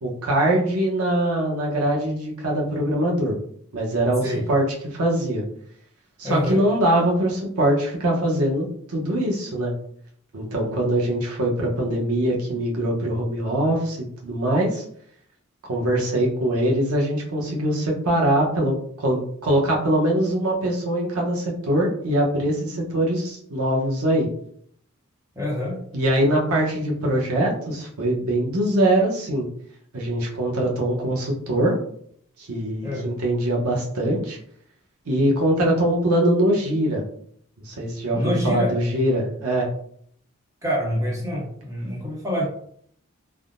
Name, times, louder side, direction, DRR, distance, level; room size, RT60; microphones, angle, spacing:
voice 1, 0.0-3.4 3.7-4.6 4.9-5.4 6.2-9.7 10.3-14.8 15.7-24.3 25.9-29.5 29.9-31.7 32.4-34.4 35.1-37.0 37.6-39.7, right 1 dB, 90° right, -2 dB, 0.8 m, -22 dB
voice 2, 6.2-6.6 25.3-25.8 32.8-33.1 38.1-38.7 40.6-42.4, left 1 dB, 15° right, -4 dB, 0.8 m, -26 dB
3.5 x 2.1 x 2.5 m, 0.63 s
head